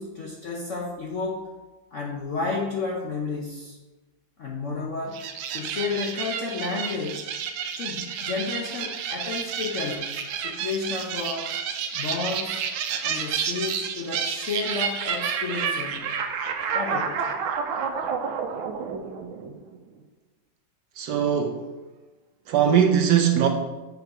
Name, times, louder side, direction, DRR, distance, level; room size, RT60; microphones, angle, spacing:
voice 1, 0.0-1.5 1.9-3.8 4.4-5.2 5.5-7.3 7.8-10.1 10.4-11.5 11.9-12.6 13.0-16.2 16.7-17.4, left 4 dB, 60° left, -1 dB, 0.8 m, -31 dB
sound 1, 5.1-19.8, right 7 dB, 90° right, 1.4 m, -30 dB
voice 2, 20.9-21.7 22.5-23.5, right 8 dB, 70° right, 5 dB, 1.1 m, -20 dB
6.6 x 4.8 x 4.8 m, 1.2 s
omnidirectional pair, 2.2 m